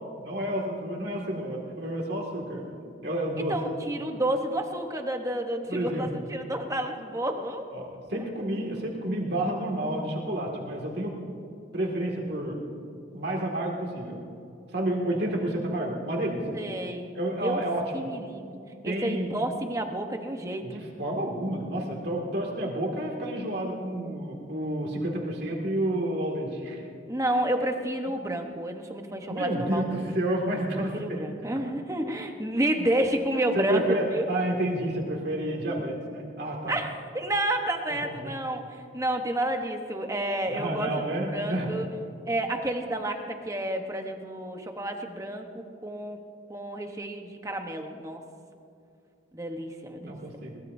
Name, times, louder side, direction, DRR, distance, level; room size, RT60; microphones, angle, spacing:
voice 1, 0.2-2.6 3.0-3.6 5.7-6.2 7.7-11.1 11.7-12.6 13.1-14.2 14.7-16.6 17.1-18.1 18.8-19.3 20.6-26.9 29.3-31.3 33.3-36.8 37.9-38.3 40.5-41.7 50.0-50.6, right 1 dB, 55° right, -1 dB, 2.2 m, -30 dB
voice 2, 3.5-7.7 8.1-8.2 16.5-17.1 17.4-17.6 17.9-18.6 18.8-20.8 27.1-29.8 30.7-34.3 36.7-40.9 41.3-41.9 42.3-46.2 46.5-48.2 49.3-50.1, right 1 dB, 15° right, 4 dB, 1.0 m, -30 dB
22.0 x 19.5 x 2.7 m, 2.6 s
head